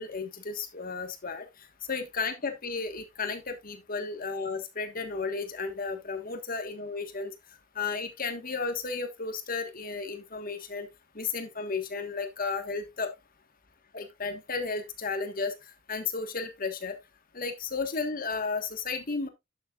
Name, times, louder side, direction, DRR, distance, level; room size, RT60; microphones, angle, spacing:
voice 1, 0.0-1.5 1.9-7.3 7.7-10.9 11.1-13.1 13.9-15.6 15.9-17.0 17.3-19.3, left 4 dB, 45° left, 1.5 m, -33 dB
11.0 x 7.2 x 2.4 m
head